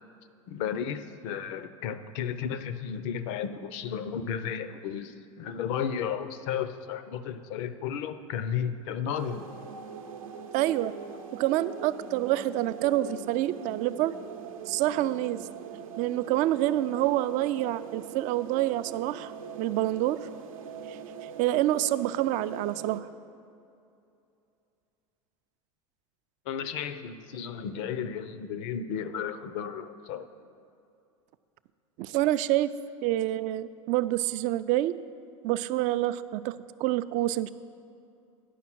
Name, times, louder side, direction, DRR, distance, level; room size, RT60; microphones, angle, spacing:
voice 1, 0.5-9.5 26.5-30.3, left 8 dB, 60° left, 12 dB, 0.6 m, -33 dB
sound 1, 9.1-23.0, right 7 dB, 85° right, 0.7 m, -42 dB
voice 2, 10.5-10.9 11.3-14.1 14.7-15.4 16.0-19.3 19.6-20.2 20.9-21.0 21.4-23.1 32.0-32.7 33.0-34.9 35.4-37.5, right 14 dB, 50° right, 14 dB, 0.4 m, -27 dB
10.0 x 5.5 x 6.0 m, 2.6 s
hypercardioid pair, 90°, 17 cm